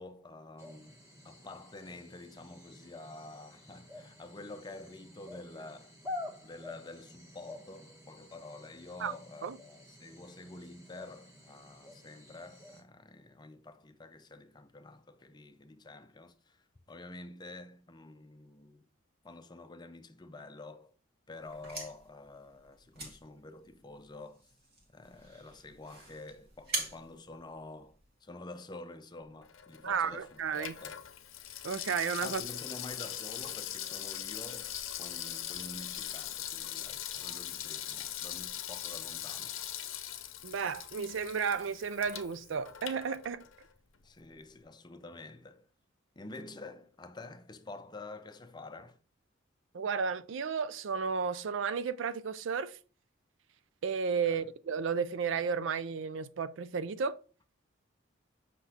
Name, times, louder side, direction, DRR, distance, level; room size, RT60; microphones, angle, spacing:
voice 1, 0.0-6.0 6.4-18.8 19.2-20.9 21.3-24.5 24.9-31.0 32.2-39.6 44.0-45.7 46.2-49.0 54.2-54.5, left 2 dB, 20° left, 0.5 m, -48 dB
sound 1, 0.6-12.8, left 2 dB, 15° right, 1.4 m, -49 dB
sound 2, 21.4-28.2, right 2 dB, 50° right, 1.7 m, -44 dB
Water tap faucet / Sink (filling or washing), 29.4-43.7 44.0-44.1, left 11 dB, 80° left, 0.7 m, -41 dB
voice 2, 29.8-30.7 31.6-32.4 40.4-43.4 49.7-52.8 53.8-57.2, right 6 dB, 65° right, 0.4 m, -33 dB
7.8 x 5.9 x 2.8 m
head